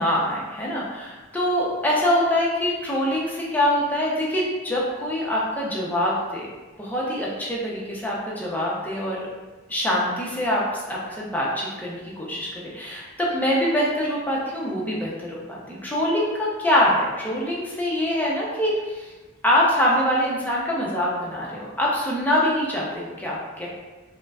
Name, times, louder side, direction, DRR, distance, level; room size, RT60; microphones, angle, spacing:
voice 1, 0.0-6.5 6.8-9.3 9.7-19.1 19.4-23.7, left 1 dB, 10° left, -5 dB, 0.6 m, -24 dB
4.9 x 2.1 x 2.3 m, 1.2 s
head